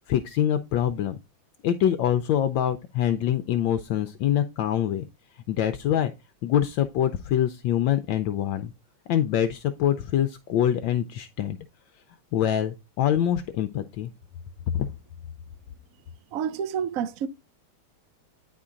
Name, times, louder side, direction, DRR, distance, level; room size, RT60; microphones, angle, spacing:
voice 1, 0.1-1.2 1.6-5.0 5.5-6.1 6.4-8.7 9.1-11.6 12.3-14.1 14.7-14.9, left 10 dB, 75° left, 1.2 m, -25 dB
voice 2, 16.3-17.3, right 8 dB, 80° right, 0.7 m, -28 dB
9.6 x 4.4 x 3.7 m
omnidirectional pair, 2.2 m